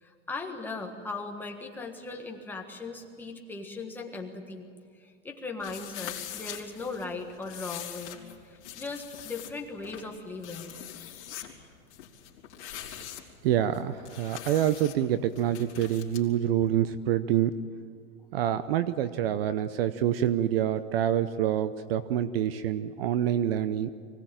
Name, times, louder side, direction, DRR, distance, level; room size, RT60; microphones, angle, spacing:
voice 1, 0.0-4.7 5.0-8.2 8.4-11.7, left 3 dB, 5° left, 1 dB, 1.5 m, -39 dB
sound 1, 5.6-16.2, left 11 dB, 60° left, 3.5 m, -43 dB
voice 2, 13.4-17.5 18.3-23.9, right 10 dB, 45° right, 14 dB, 0.7 m, -26 dB
24.5 x 17.5 x 9.0 m, 2.1 s
supercardioid pair, 160°, 40 cm